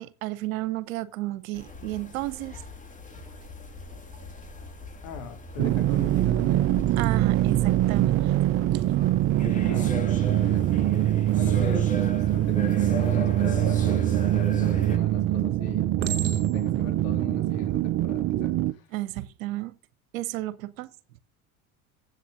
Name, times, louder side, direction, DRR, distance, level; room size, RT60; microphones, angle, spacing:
voice 1, 0.0-2.6 7.0-8.8 11.6-11.7 18.9-19.7 20.1-20.9, right 17 dB, 70° right, 1.0 m, -32 dB
sound 1, 1.5-15.0, left 2 dB, 20° left, 2.3 m, -39 dB
voice 2, 5.0-7.0 7.5-7.9 9.5-10.0 10.2-10.9 11.4-18.9, left 5 dB, 70° left, 3.2 m, -41 dB
sound 2, 5.6-18.7, right 13 dB, 35° right, 0.5 m, -23 dB
Chink clink, 14.5-15.0 16.0-16.8 17.5-17.8, right 10 dB, 50° right, 2.9 m, -34 dB
8.2 x 6.6 x 7.8 m
hypercardioid pair, 85°, 42 cm